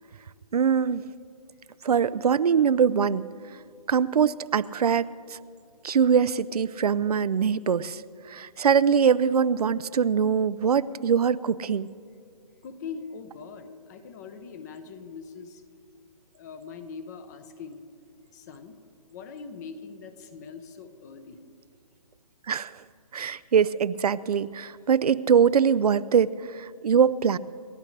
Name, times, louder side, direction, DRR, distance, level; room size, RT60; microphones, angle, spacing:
voice 1, 0.5-1.0 1.8-3.2 3.9-5.1 5.8-8.0 8.3-11.9 22.5-22.7 23.1-26.3 26.5-27.4, right 7 dB, 75° right, 17 dB, 0.6 m, -22 dB
voice 2, 12.6-15.6 16.3-17.8 18.3-18.8 19.1-21.4, left 5 dB, 25° left, 9 dB, 0.9 m, -42 dB
28.5 x 13.0 x 3.3 m, 2.3 s
hypercardioid pair, 155°, 20 cm